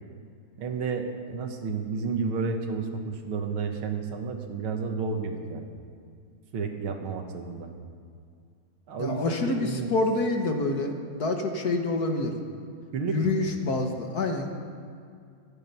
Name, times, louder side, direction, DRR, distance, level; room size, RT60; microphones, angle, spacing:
voice 1, 0.6-5.6 6.5-7.7 8.9-9.9 12.9-13.4, right 5 dB, 85° right, 4 dB, 2.2 m, -31 dB
voice 2, 9.0-12.3 13.1-14.5, left 2 dB, 50° left, 4 dB, 1.7 m, -27 dB
25.5 x 9.2 x 5.6 m, 2.3 s
omnidirectional pair, 2.3 m